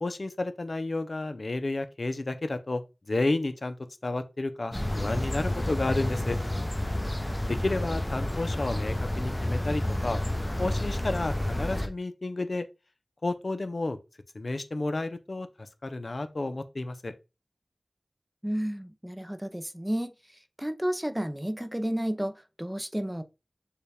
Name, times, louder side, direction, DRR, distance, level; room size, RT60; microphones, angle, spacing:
voice 1, 0.0-2.8 3.1-3.8 4.0-6.4 7.5-10.2 10.6-12.7 13.2-14.0 14.3-17.1, left 2 dB, 65° left, 0.6 m, -31 dB
sound 1, 4.7-11.9, left 1 dB, 20° left, 0.9 m, -30 dB
voice 2, 18.4-23.2, equal, 10° right, 0.5 m, -32 dB
6.6 x 2.3 x 3.4 m
wide cardioid pair, 40°, 0 cm